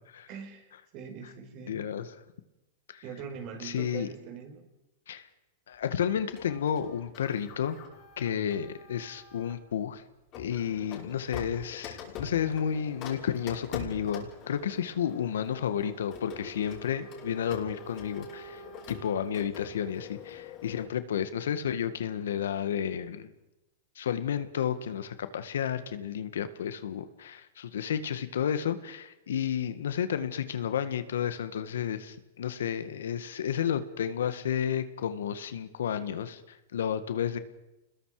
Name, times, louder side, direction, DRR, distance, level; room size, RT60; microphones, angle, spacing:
voice 1, 0.3-2.1 3.0-4.7 8.3-8.5, right 6 dB, 45° right, 5 dB, 4.7 m, -43 dB
voice 2, 1.7-2.1 2.9-3.0 3.6-4.1 5.1-5.2 5.7-7.8 8.2-10.0 10.4-18.6 18.9-23.3 24.0-37.4, left 8 dB, 85° left, 11 dB, 1.8 m, -31 dB
Printer, 6.4-9.6 10.3-20.9, left 5 dB, 40° left, 6.0 m, -44 dB
29.0 x 21.0 x 5.0 m, 0.95 s
hypercardioid pair, 130°, 0 cm